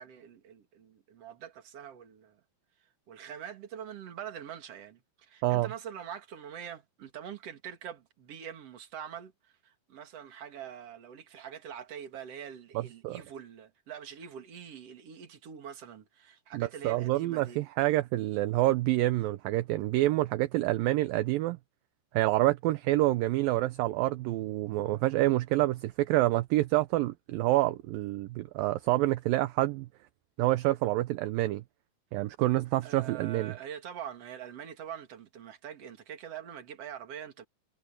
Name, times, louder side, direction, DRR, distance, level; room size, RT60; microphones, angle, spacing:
voice 1, 0.0-2.4 3.1-9.3 9.6-17.6 32.8-37.5, right 9 dB, 45° right, 2.8 m, -44 dB
voice 2, 12.8-13.2 16.5-21.6 22.1-29.9 30.4-31.6 32.1-33.5, right 17 dB, 75° right, 2.3 m, -27 dB
omnidirectional pair, 4.4 m